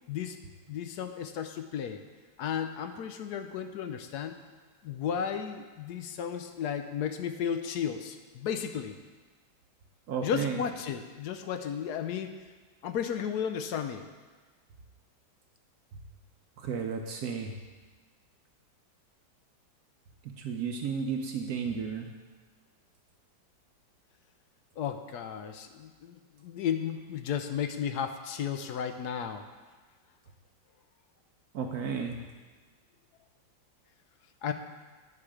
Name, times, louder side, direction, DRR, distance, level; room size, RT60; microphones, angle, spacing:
voice 1, 0.1-0.4 0.7-2.0 2.4-4.4 4.8-9.0 10.2-12.4 12.8-14.1 24.8-29.5 34.4-34.5, left 8 dB, 70° left, 8 dB, 1.0 m, -34 dB
voice 2, 10.1-10.6 16.6-17.5 20.4-22.1 31.5-32.2, right 6 dB, 65° right, 3 dB, 1.1 m, -33 dB
9.7 x 6.8 x 4.9 m, 1.4 s
omnidirectional pair, 2.1 m